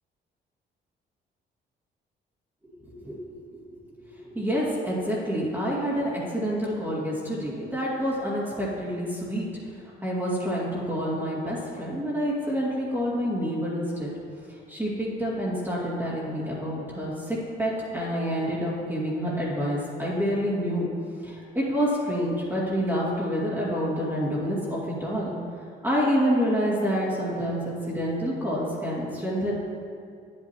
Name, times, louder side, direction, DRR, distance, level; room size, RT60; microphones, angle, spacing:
voice 1, 2.6-9.5 10.0-14.1 14.5-20.9 21.2-25.3 25.8-29.5, equal, 10° right, -8 dB, 2.2 m, -28 dB
9.2 x 8.7 x 3.0 m, 2.4 s
cardioid pair, 90°, 20 cm